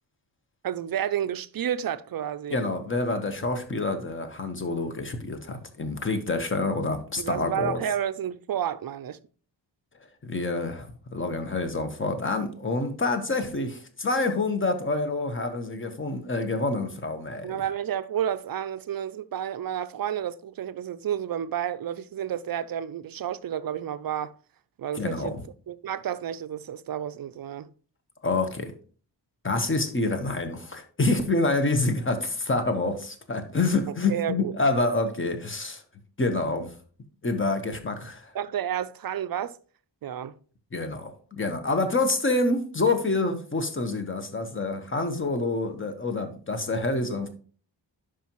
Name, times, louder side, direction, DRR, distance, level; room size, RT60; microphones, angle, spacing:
voice 1, 0.6-2.7 7.2-9.2 17.4-24.3 24.8-25.3 25.7-27.7 34.1-34.5 38.3-39.6 40.0-40.3, right 9 dB, 50° right, 0.5 m, -31 dB
voice 2, 2.5-7.8 10.2-17.6 25.0-25.4 28.2-28.7 29.4-35.8 36.2-36.7 37.2-38.3 40.7-47.3, left 2 dB, 25° left, 1.1 m, -27 dB
11.0 x 5.0 x 3.0 m
wide cardioid pair, 145°, 45 cm